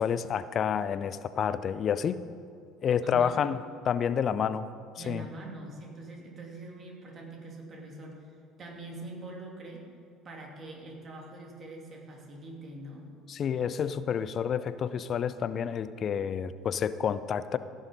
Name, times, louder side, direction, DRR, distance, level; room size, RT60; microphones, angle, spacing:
voice 1, 0.0-2.2 2.8-3.6 3.8-4.7 5.1-5.2 13.3-17.6, left 8 dB, 45° left, 14 dB, 0.5 m, -29 dB
voice 2, 5.0-9.9 10.2-13.1, right 2 dB, 40° right, 0 dB, 2.8 m, -44 dB
16.5 x 6.4 x 5.3 m, 2.4 s
hypercardioid pair, 60°, 0 cm